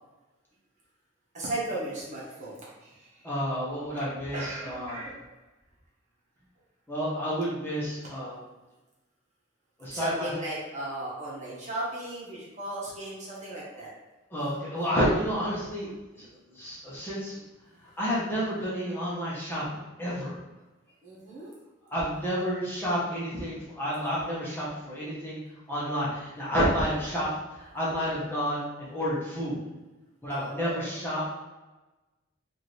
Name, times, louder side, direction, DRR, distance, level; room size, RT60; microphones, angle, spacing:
voice 1, 1.3-3.3 4.3-5.1 9.9-13.9 17.8-17.9 21.0-21.5 30.3-30.6, right 1 dB, 40° right, -6 dB, 1.3 m, -36 dB
voice 2, 3.2-5.0 6.9-8.4 9.8-10.3 14.3-15.9 16.1-17.4 18.0-19.6 20.0-20.4 21.9-25.4 25.7-27.3 27.5-29.6 30.2-31.3, equal, 10° left, -8 dB, 1.1 m, -30 dB
4.8 x 2.7 x 3.2 m, 1.1 s
head